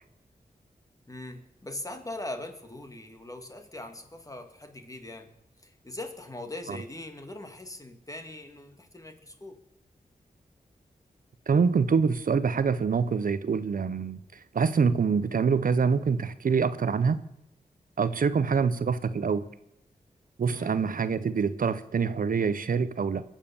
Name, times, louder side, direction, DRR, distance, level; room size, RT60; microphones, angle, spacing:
voice 1, 1.1-5.3 5.6-9.6 18.5-18.6 20.5-20.8, left 2 dB, 20° left, 6 dB, 2.2 m, -41 dB
voice 2, 11.5-17.2 18.0-19.5 20.4-23.2, right 5 dB, 70° right, 14 dB, 0.7 m, -25 dB
22.0 x 7.3 x 7.1 m, 0.83 s
cardioid pair, 50°, 15 cm